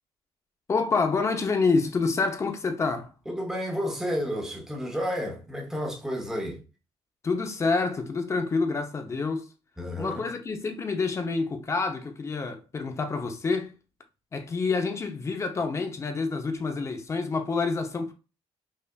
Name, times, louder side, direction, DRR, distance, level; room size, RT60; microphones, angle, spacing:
voice 1, 0.7-3.1 7.2-9.5 10.0-13.7 14.3-18.1, left 4 dB, 25° left, 0.6 m, -27 dB
voice 2, 3.3-6.6 9.8-10.2, equal, 5° right, 0.9 m, -31 dB
5.5 x 2.4 x 2.2 m
cardioid pair, 140°, 11 cm